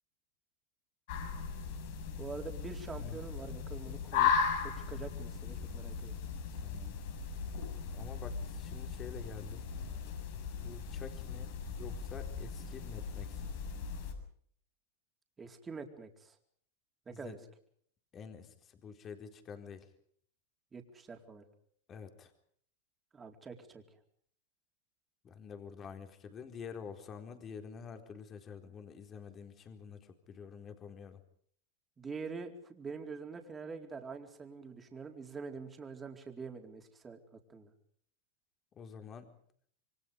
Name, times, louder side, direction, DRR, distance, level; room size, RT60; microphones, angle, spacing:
sound 1, 1.1-14.1, left 6 dB, 65° left, 7.2 m, -37 dB
voice 1, 2.2-4.3 4.6-6.1 15.4-16.4 17.1-17.4 20.7-21.4 23.1-23.8 32.0-37.2 37.5-37.7, right 5 dB, 20° right, 4 dB, 4.3 m, -45 dB
voice 2, 6.6-7.0 7.9-9.7 10.6-11.5 11.8-13.5 17.1-17.4 18.1-19.9 21.9-22.3 25.2-31.2 38.7-39.3, left 6 dB, 30° left, 6 dB, 4.1 m, -48 dB
28.0 x 23.5 x 5.3 m, 0.63 s
hypercardioid pair, 110°, 0 cm